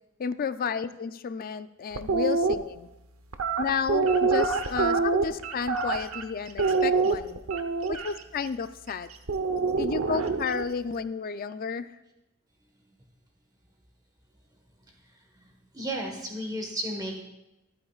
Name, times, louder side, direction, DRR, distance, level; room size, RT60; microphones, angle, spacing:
voice 1, 0.2-2.9 3.6-7.4 7.9-9.1 9.8-11.9, left 6 dB, 45° left, 12 dB, 0.4 m, -32 dB
sound 1, 1.9-2.5 3.3-6.2 6.6-8.1 9.3-10.6, right 4 dB, 80° right, 0.9 m, -25 dB
voice 2, 15.7-17.2, right 1 dB, 20° right, 1 dB, 1.3 m, -33 dB
25.0 x 8.8 x 2.4 m, 0.94 s
head